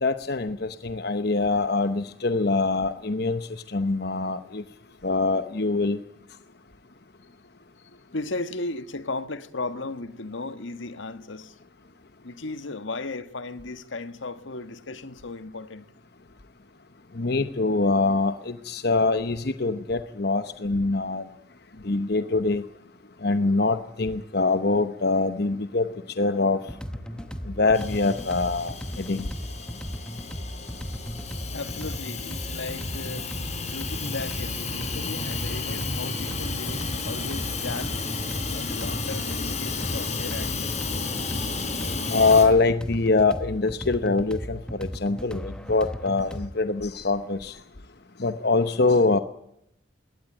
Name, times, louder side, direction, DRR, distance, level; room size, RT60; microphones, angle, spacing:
voice 1, 0.0-3.4 3.7-4.6 5.0-6.0 17.2-21.2 21.9-22.6 23.2-25.9 26.2-26.6 27.6-28.7 29.1-29.2 42.1-47.5 48.2-49.2, left 3 dB, 50° left, 0.9 m, -24 dB
voice 2, 7.9-11.5 12.2-15.9 31.5-33.3 33.6-37.9 38.5-40.7, left 2 dB, 75° left, 1.5 m, -36 dB
sound 1, 26.6-46.5, equal, 5° left, 1.0 m, -36 dB
Hiss / Toilet flush / Trickle dribble, 27.7-42.5, left 4 dB, 35° left, 4.7 m, -32 dB
21.0 x 18.0 x 9.0 m
head